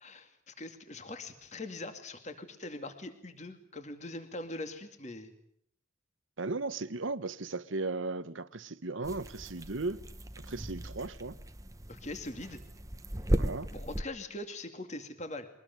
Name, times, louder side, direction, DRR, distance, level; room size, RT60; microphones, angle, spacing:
voice 1, 0.0-5.3 11.9-12.6 13.7-15.5, left 2 dB, 35° left, 2.5 m, -42 dB
voice 2, 6.4-10.0 10.5-11.4 13.4-13.7, right 3 dB, 85° right, 1.2 m, -36 dB
sound 1, 9.0-14.0, right 1 dB, 15° right, 1.0 m, -36 dB
23.5 x 19.5 x 9.4 m
head